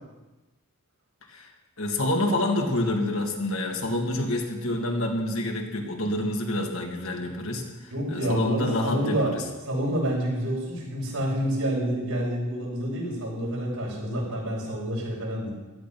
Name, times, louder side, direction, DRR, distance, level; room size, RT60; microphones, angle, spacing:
voice 1, 1.8-9.4, left 1 dB, 65° left, 1 dB, 2.6 m, -27 dB
voice 2, 7.9-9.3 9.7-15.5, right 1 dB, 70° right, -4 dB, 7.3 m, -28 dB
16.5 x 13.0 x 6.0 m, 1.1 s
head